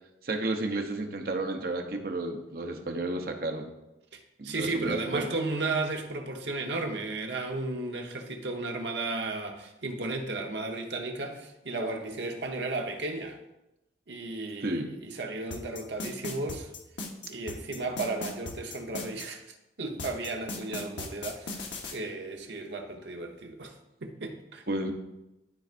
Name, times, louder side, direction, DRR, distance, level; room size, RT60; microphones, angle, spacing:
voice 1, 0.2-3.7 4.4-5.3 14.6-14.9 24.7-24.9, right 2 dB, 55° right, 0.9 m, -32 dB
voice 2, 4.1-13.4 14.1-16.7 17.2-19.5 19.8-21.6 21.9-23.7 24.0-24.6, right 2 dB, 80° right, 1.0 m, -34 dB
sound 1, 15.5-19.3 20.0-21.9, left 3 dB, 85° left, 1.1 m, -37 dB
12.0 x 4.5 x 2.5 m
head